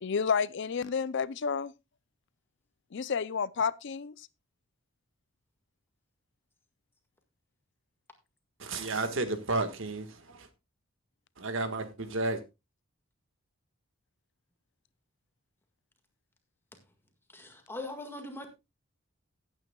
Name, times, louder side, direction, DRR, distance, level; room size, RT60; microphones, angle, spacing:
voice 1, 0.0-1.7 2.9-4.3, left 6 dB, 60° left, 0.5 m, -30 dB
voice 2, 8.6-10.5 11.4-12.4, right 2 dB, 65° right, 1.6 m, -32 dB
voice 3, 17.3-18.5, left 2 dB, 10° left, 1.8 m, -41 dB
17.0 x 9.0 x 2.3 m
head